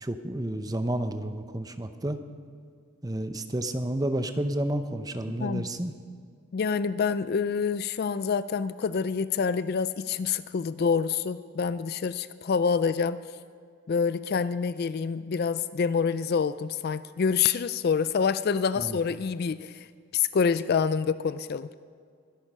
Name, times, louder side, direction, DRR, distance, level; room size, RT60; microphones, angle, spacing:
voice 1, 0.0-2.2 3.0-5.9 18.8-19.0, right 1 dB, 15° right, 9 dB, 0.7 m, -30 dB
voice 2, 6.5-13.2 13.9-19.9 20.1-21.7, left 6 dB, 45° left, 15 dB, 0.3 m, -27 dB
22.5 x 11.0 x 5.5 m, 2.1 s
head